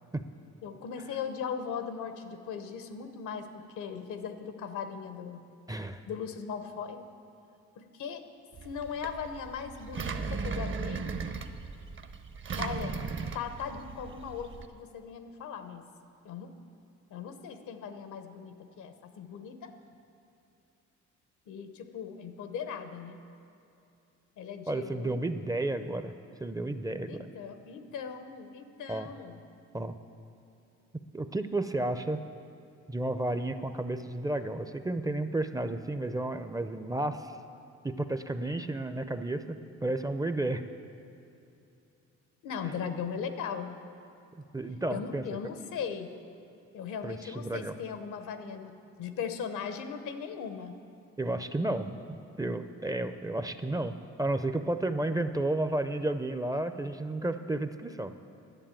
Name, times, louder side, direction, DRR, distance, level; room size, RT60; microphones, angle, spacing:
voice 1, 0.6-5.4 6.1-7.0 7.8-8.2 8.6-11.1 12.5-13.0 13.3-15.9 16.2-16.5 17.1-19.7 21.5-23.2 24.4-25.3 27.1-29.4 42.4-43.8 44.9-46.1 46.7-48.7 49.0-50.8, left 7 dB, 85° left, 8 dB, 1.0 m, -38 dB
voice 2, 5.7-6.0 24.7-26.1 26.4-27.3 28.9-29.1 29.7-29.9 31.1-32.2 32.9-37.4 37.8-40.6 44.5-45.2 47.0-47.7 51.2-58.1, right 2 dB, 10° right, 9 dB, 0.5 m, -32 dB
Engine, 8.5-14.7, right 4 dB, 40° right, 0.8 m, -37 dB
11.5 x 6.9 x 9.0 m, 2.7 s
cardioid pair, 90°, 30 cm